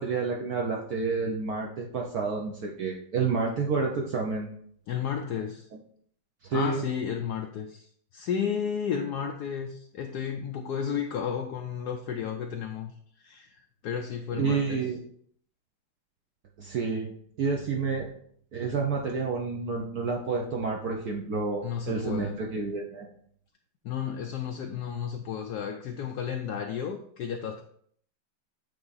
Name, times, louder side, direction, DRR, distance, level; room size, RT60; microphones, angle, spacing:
voice 1, 0.0-4.5 6.5-6.8 14.3-15.0 16.6-18.1 18.5-23.1, right 4 dB, 60° right, -1 dB, 1.2 m, -29 dB
voice 2, 4.9-5.7 6.5-12.9 13.2-14.8 21.6-22.4 23.8-27.6, left 7 dB, 70° left, 4 dB, 1.0 m, -33 dB
8.5 x 3.4 x 4.0 m, 0.62 s
omnidirectional pair, 2.1 m